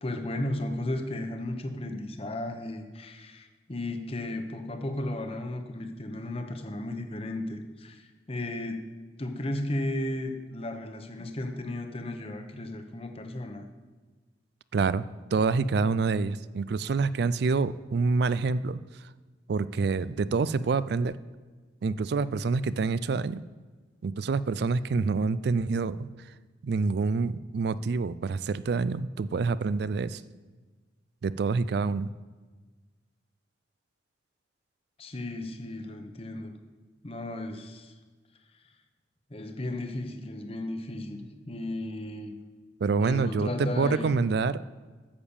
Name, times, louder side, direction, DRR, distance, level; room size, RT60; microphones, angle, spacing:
voice 1, 0.0-8.9 9.2-13.6 35.0-36.5 37.0-37.9 39.3-42.4 43.0-44.1, left 1 dB, 30° left, 5 dB, 0.9 m, -34 dB
voice 2, 14.7-15.0 15.3-18.8 19.5-21.2 21.8-23.4 24.0-26.1 26.6-30.2 31.2-32.1 42.8-43.5 43.8-44.6, right 4 dB, 60° right, 17 dB, 0.3 m, -27 dB
8.7 x 7.2 x 7.0 m, 1.4 s
head